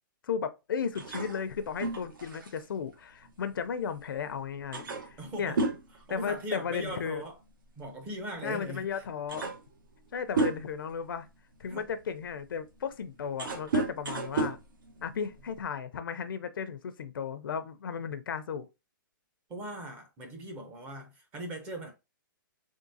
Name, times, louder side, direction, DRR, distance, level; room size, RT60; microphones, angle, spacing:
voice 1, 0.2-5.6 6.1-7.2 8.4-9.5 10.1-11.3 11.6-14.6 15.0-18.7, left 7 dB, 80° left, 0.6 m, -35 dB
sound 1, 0.9-4.0 4.3-4.4 4.7-6.9 7.2-7.4 8.4-8.5 9.0-10.9 11.5-15.6, right 3 dB, 70° right, 1.1 m, -34 dB
voice 2, 5.2-5.6 6.0-7.4 7.8-9.0 11.7-11.8 19.5-21.9, right 1 dB, 15° right, 0.6 m, -39 dB
3.6 x 3.6 x 2.7 m
hypercardioid pair, 170°, 11 cm